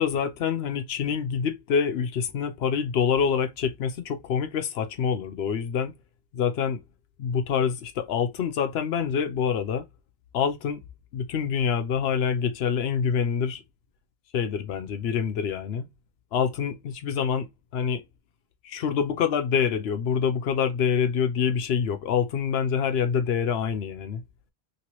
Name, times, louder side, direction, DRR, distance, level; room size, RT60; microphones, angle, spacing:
voice 1, 0.0-5.9 6.3-6.8 7.2-9.9 10.3-10.8 11.1-13.6 14.3-15.9 16.3-17.5 17.7-18.0 18.6-24.2, left 7 dB, 80° left, 0.9 m, -26 dB
3.1 x 3.0 x 2.9 m
omnidirectional pair, 1.0 m